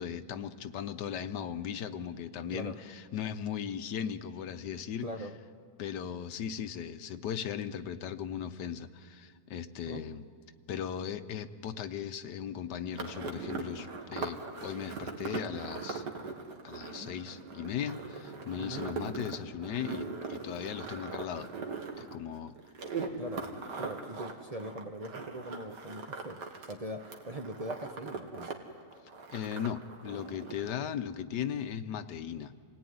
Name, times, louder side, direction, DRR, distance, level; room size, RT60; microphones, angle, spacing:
voice 1, 0.0-5.1 5.8-10.3 10.7-16.0 16.6-21.5 22.0-22.5 29.3-32.5, left 8 dB, 90° left, 10 dB, 1.5 m, -37 dB
voice 2, 5.0-5.4 9.9-10.0 18.6-18.8 23.2-23.5 23.8-28.5, right 1 dB, 30° right, 4 dB, 0.7 m, -41 dB
sound 1, 12.9-26.7 27.0-28.5 28.8-30.7, right 4 dB, 90° right, 2.3 m, -40 dB
27.5 x 18.0 x 9.5 m, 2.1 s
omnidirectional pair, 1.8 m